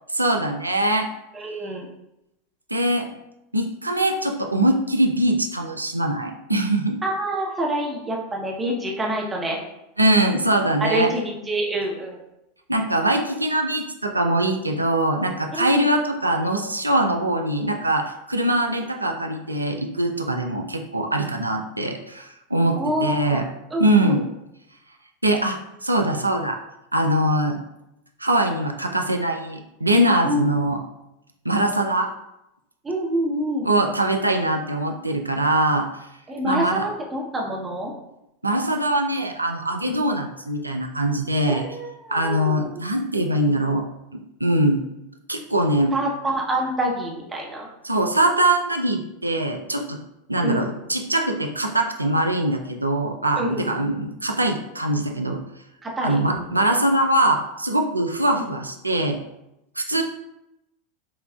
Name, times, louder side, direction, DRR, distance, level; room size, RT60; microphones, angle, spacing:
voice 1, 0.1-1.1 2.7-3.1 3.5-7.0 10.0-11.1 12.7-23.4 23.8-24.2 25.2-26.6 26.9-27.6 28.2-30.8 31.4-32.1 33.6-35.9 36.4-36.8 38.4-41.6 42.1-43.8 44.1-44.8 45.3-45.9 47.8-50.0 50.3-55.4 56.0-59.2 59.8-60.0, right 1 dB, 85° right, 4 dB, 0.3 m, -22 dB
voice 2, 1.3-1.9 7.0-9.6 10.8-12.2 15.5-15.9 22.7-23.4 23.7-24.2 30.2-30.5 32.8-33.7 36.3-37.9 39.8-40.0 41.5-42.7 45.9-47.7 50.4-50.7 53.3-53.9 55.8-56.6 58.3-58.5, right 1 dB, 15° right, -1 dB, 0.9 m, -27 dB
5.6 x 2.3 x 2.3 m, 0.87 s
figure-of-eight pair, 85°, 0 cm